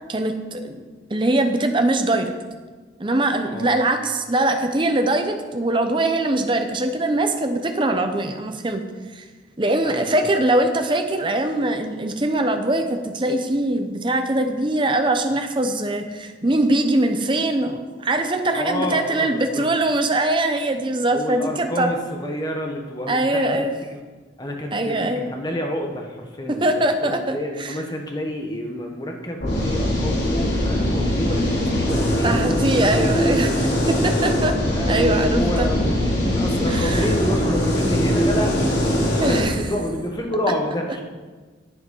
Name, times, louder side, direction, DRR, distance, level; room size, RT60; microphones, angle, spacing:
voice 1, 0.1-0.8 1.1-2.3 3.0-8.8 9.1-9.2 9.6-21.9 23.1-23.7 24.7-25.2 26.6-27.4 32.2-34.5 34.9-35.7 36.7-37.0 39.2-39.5, right 1 dB, 25° right, 6 dB, 0.8 m, -22 dB
voice 2, 9.8-10.3 18.5-19.7 21.1-24.0 24.4-32.4 34.7-41.0, equal, 20° left, 2 dB, 1.2 m, -28 dB
sound 1, 29.4-39.4, equal, 65° left, 3.0 m, -21 dB
10.0 x 7.9 x 5.5 m, 1.4 s
head